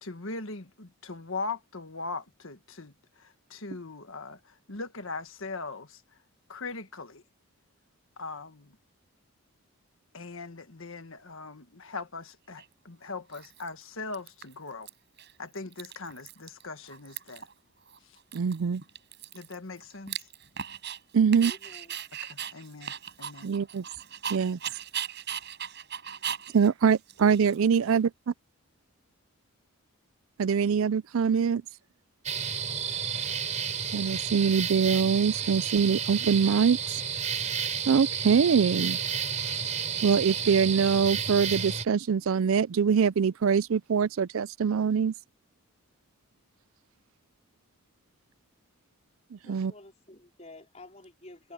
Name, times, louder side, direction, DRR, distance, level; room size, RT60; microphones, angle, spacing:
voice 1, 0.0-6.0 6.5-7.2 8.2-8.7 10.1-14.9 15.4-17.5 19.3-20.2 22.2-23.5, left 3 dB, 60° left, 1.6 m, -40 dB
Dog, 12.6-12.7 13.3-13.8 14.1-14.9 15.2-15.3 15.6-16.6 16.9-17.5 17.9-18.0 18.3-21.0 21.3-27.9, right 8 dB, 50° right, 7.0 m, -38 dB
voice 2, 18.3-18.8 21.1-21.5 23.4-23.8 24.3-24.6 26.5-28.1 30.4-31.6 33.9-36.8 37.9-39.0 40.0-45.1 49.3-49.7, right 6 dB, 65° right, 0.4 m, -24 dB
voice 3, 21.4-22.1 22.7-22.8 49.4-51.5, left 2 dB, 30° left, 4.5 m, -50 dB
sound 1, 32.3-41.9, right 7 dB, 30° right, 3.5 m, -31 dB
head